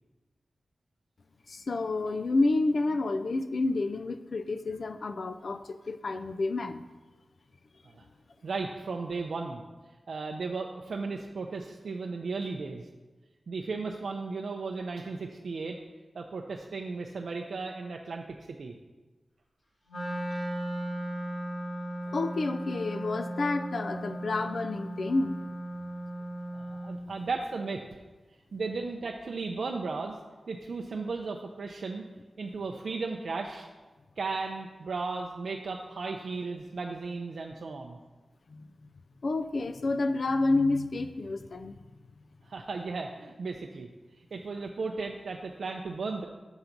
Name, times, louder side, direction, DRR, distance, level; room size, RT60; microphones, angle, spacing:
voice 1, 1.5-6.8 22.1-25.4 38.5-38.7 39.2-41.8, left 2 dB, 60° left, 10 dB, 0.3 m, -29 dB
voice 2, 8.4-9.6 10.1-12.9 13.5-15.8 16.1-18.7 20.3-20.4 26.5-28.0 28.5-30.2 30.5-32.0 32.4-33.7 34.2-38.0 42.4-43.9 44.3-46.3, right 4 dB, 70° right, 2 dB, 0.4 m, -35 dB
Wind instrument woodwind instrument, 19.9-27.0, right 1 dB, 75° left, 2.1 m, -36 dB
7.0 x 3.9 x 5.8 m, 1.2 s
wide cardioid pair, 135°, 0 cm